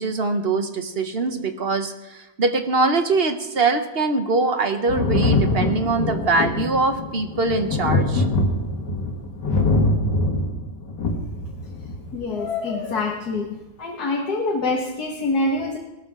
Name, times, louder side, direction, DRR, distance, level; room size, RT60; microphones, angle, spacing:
voice 1, 0.0-8.2, right 3 dB, 45° right, 7 dB, 0.9 m, -23 dB
Thunder, 4.9-12.2 13.4-13.5, left 2 dB, 90° left, 2.5 m, -23 dB
voice 2, 12.1-13.5 13.8-15.8, left 3 dB, 70° left, -1 dB, 2.1 m, -25 dB
18.0 x 13.0 x 3.7 m, 1.1 s
omnidirectional pair, 1.8 m